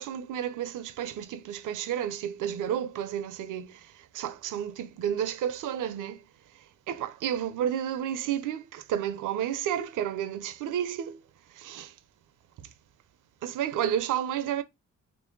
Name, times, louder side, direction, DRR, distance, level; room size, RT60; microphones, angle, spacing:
voice 1, 0.0-6.2 6.9-11.2 11.5-11.9 12.6-12.7 13.4-14.6, right 10 dB, 85° right, 0.5 m, -31 dB
3.1 x 2.5 x 4.3 m
supercardioid pair, 45°, 31 cm